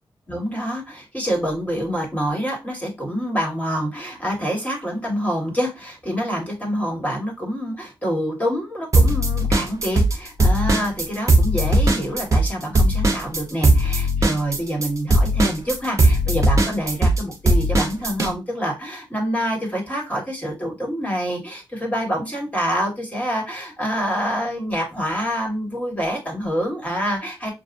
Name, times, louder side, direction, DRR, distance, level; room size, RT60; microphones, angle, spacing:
voice 1, 0.3-27.5, equal, 15° left, -1 dB, 1.8 m, -26 dB
sound 1, 8.9-10.1 10.4-18.3, right 1 dB, 35° right, 1.0 m, -18 dB
6.5 x 2.5 x 2.6 m, 0.25 s
wide cardioid pair, 145°, 9 cm